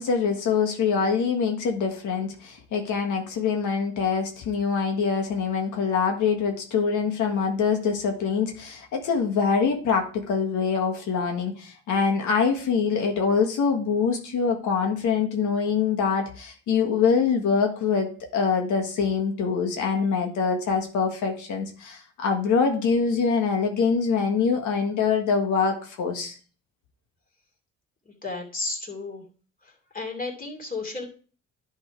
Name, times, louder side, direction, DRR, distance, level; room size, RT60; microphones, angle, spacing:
voice 1, 0.0-26.4, left 5 dB, 80° left, 3 dB, 1.6 m, -24 dB
voice 2, 28.1-29.2 29.6-31.1, left 3 dB, 30° left, 1 dB, 2.7 m, -33 dB
10.5 x 3.7 x 4.8 m, 0.41 s
cardioid pair, 90°, 30 cm